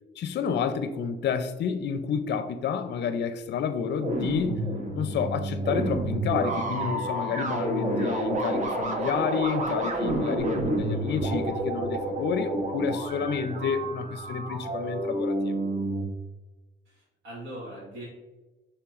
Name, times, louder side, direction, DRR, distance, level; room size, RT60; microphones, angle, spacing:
voice 1, 0.2-4.6 5.0-15.5, left 6 dB, 60° left, 10 dB, 0.5 m, -30 dB
sound 1, 4.0-16.0, right 1 dB, 40° right, 0.9 m, -29 dB
voice 2, 16.8-18.1, right 1 dB, 75° right, -8 dB, 1.5 m, -41 dB
5.9 x 3.2 x 2.4 m, 1.2 s
cardioid pair, 90°, 20 cm